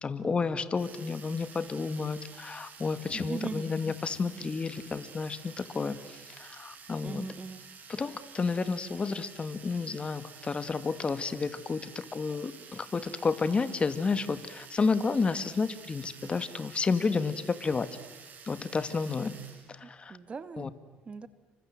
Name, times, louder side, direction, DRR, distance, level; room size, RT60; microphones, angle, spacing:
voice 1, 0.0-7.3 7.9-17.9 18.5-19.4 19.7-20.2 20.6-20.7, left 4 dB, 30° left, 12 dB, 1.8 m, -31 dB
sound 1, 0.7-19.7, right 6 dB, 50° right, 5.2 m, -50 dB
voice 2, 3.1-3.7 7.0-7.6 19.8-20.7 21.1-21.3, right 4 dB, 30° right, 13 dB, 1.4 m, -39 dB
29.0 x 25.0 x 7.7 m, 1.2 s
cardioid pair, 95°, 4 cm